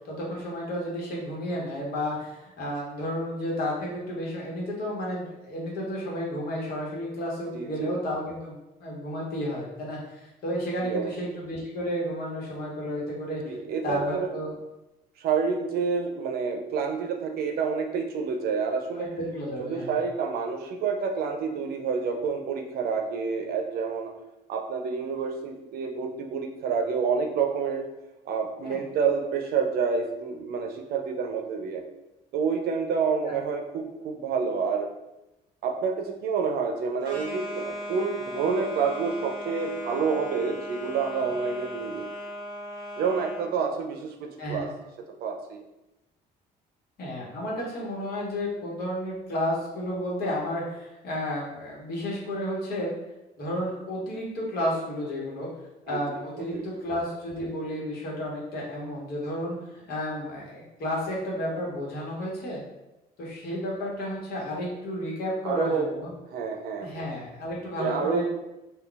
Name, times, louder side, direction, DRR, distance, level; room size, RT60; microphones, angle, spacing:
voice 1, 0.0-13.4 13.8-14.5 18.9-19.9 28.6-28.8 33.2-33.4 41.2-41.3 44.4-44.7 47.0-52.9 53.4-55.5 55.9-62.6 63.2-66.1 66.8-68.2, equal, 65° left, -4 dB, 1.1 m, -32 dB
voice 2, 7.5-8.0 10.8-11.1 13.4-14.3 15.2-19.1 19.6-24.1 24.5-27.9 28.3-31.8 32.3-34.9 35.6-42.1 43.0-44.7 45.2-45.6 55.9-56.0 56.5-56.7 65.4-65.9 66.3-67.1 67.7-68.2, right 5 dB, 65° right, 4 dB, 0.5 m, -28 dB
sound 1, 37.0-43.5, equal, 30° right, 1.1 m, -37 dB
2.3 x 2.3 x 3.8 m, 0.96 s
cardioid pair, 110°, 17 cm